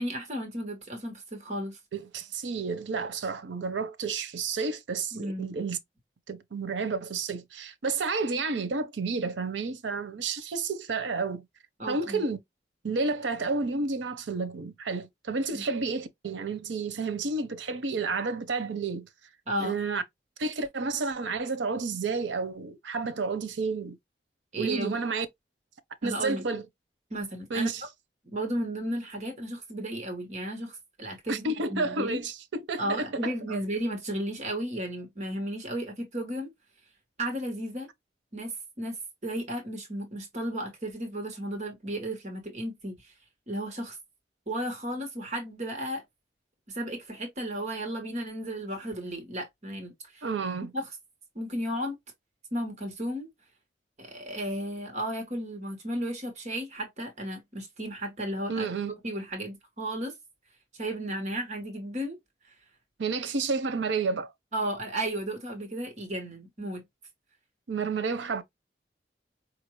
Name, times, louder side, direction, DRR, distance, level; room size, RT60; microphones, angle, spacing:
voice 1, 0.0-1.8 5.1-5.5 11.8-12.2 15.5-15.6 19.5-19.8 24.5-25.0 26.0-26.4 27.1-27.7 28.3-32.2 32.8-36.5 37.2-37.9 38.3-39.0 39.2-43.1 43.5-44.0 44.5-46.0 46.7-50.3 50.7-50.9 51.3-52.0 52.5-53.3 54.0-58.7 59.0-60.1 60.8-62.2 64.5-66.8, right 1 dB, 40° right, 1.1 m, -34 dB
voice 2, 1.9-5.8 6.3-11.4 11.9-12.4 12.8-19.1 19.6-20.0 20.4-24.0 24.6-25.3 26.0-26.6 27.5-27.8 31.3-33.6 50.2-50.7 58.5-59.0 63.0-64.3 67.7-68.4, right 4 dB, 85° right, 0.6 m, -31 dB
4.6 x 2.5 x 3.0 m
head